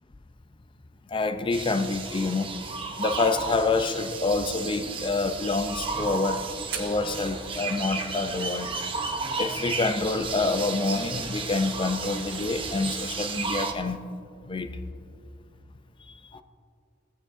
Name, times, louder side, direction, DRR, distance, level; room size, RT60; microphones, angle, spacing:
voice 1, 1.1-2.5 3.0-6.4 6.8-8.7 9.4-14.1 14.5-14.9 16.3-16.4, left 3 dB, 25° left, 10 dB, 0.4 m, -27 dB
sound 1, 1.5-13.7, right 4 dB, 30° right, 0.8 m, -33 dB
sound 2, 5.6-11.6, right 6 dB, 60° right, 1.4 m, -46 dB
16.0 x 8.9 x 2.6 m, 2.4 s
head